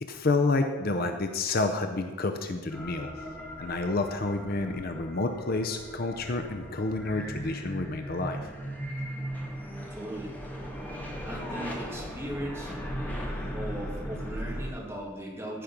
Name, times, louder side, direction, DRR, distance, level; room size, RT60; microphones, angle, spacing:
voice 1, 0.0-3.1 3.6-8.5, left 3 dB, 45° left, 6 dB, 0.6 m, -29 dB
sound 1, 2.7-14.7, equal, 10° left, 1.7 m, -38 dB
voice 2, 9.9-10.3 11.3-12.7 13.5-15.6, right 1 dB, 10° right, -3 dB, 2.1 m, -38 dB
15.0 x 5.2 x 5.9 m, 1.4 s
head